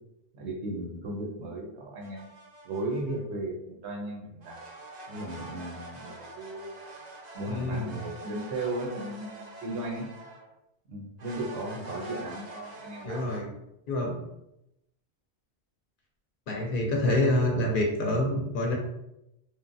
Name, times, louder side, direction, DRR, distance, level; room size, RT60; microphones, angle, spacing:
voice 1, 0.3-2.3 2.6-4.6 5.1-6.8 7.3-10.1 10.9-13.2 16.9-17.3, right 1 dB, 85° right, -1 dB, 1.0 m, -36 dB
sound 1, 2.0-3.2 4.4-10.5 11.2-13.4, right 2 dB, 50° right, 0.5 m, -45 dB
voice 2, 7.5-8.0 13.0-13.5 13.9-14.2 16.5-18.8, left 1 dB, 60° left, 0 dB, 0.6 m, -27 dB
3.1 x 2.1 x 2.5 m, 0.86 s
omnidirectional pair, 1.1 m